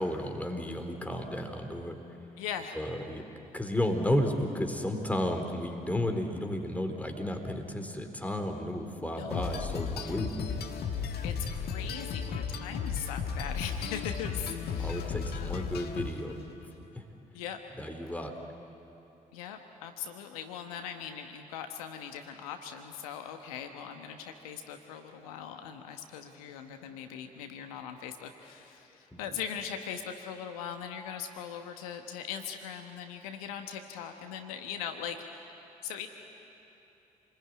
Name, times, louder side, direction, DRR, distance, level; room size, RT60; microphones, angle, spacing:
voice 1, 0.0-2.0 2.7-3.2 3.5-10.3 14.8-16.3 16.9-17.0 17.8-18.3 29.1-29.2, left 1 dB, 10° left, 4 dB, 4.2 m, -32 dB
voice 2, 2.4-2.8 9.1-9.8 11.2-15.6 17.3-17.6 19.3-35.4 35.8-36.1, left 8 dB, 80° left, 6 dB, 1.3 m, -40 dB
sound 1, 9.3-16.5, left 5 dB, 60° left, 1.8 m, -35 dB
28.0 x 21.0 x 9.6 m, 3.0 s
figure-of-eight pair, 45°, 18 cm